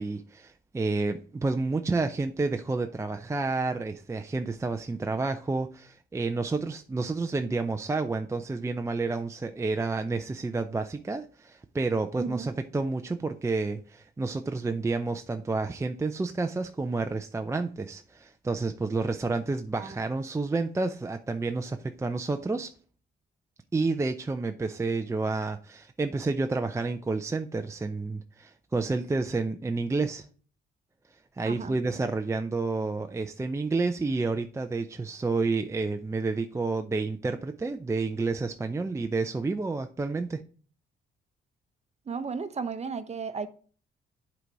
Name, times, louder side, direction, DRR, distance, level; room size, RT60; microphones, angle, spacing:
voice 1, 0.0-22.7 23.7-30.3 31.4-40.4, right 3 dB, 15° right, 0.5 m, -30 dB
voice 2, 12.2-12.5 19.8-20.0 31.4-31.8 42.1-43.5, right 5 dB, 35° right, 0.8 m, -34 dB
7.9 x 4.0 x 4.6 m
cardioid pair, 90°, 20 cm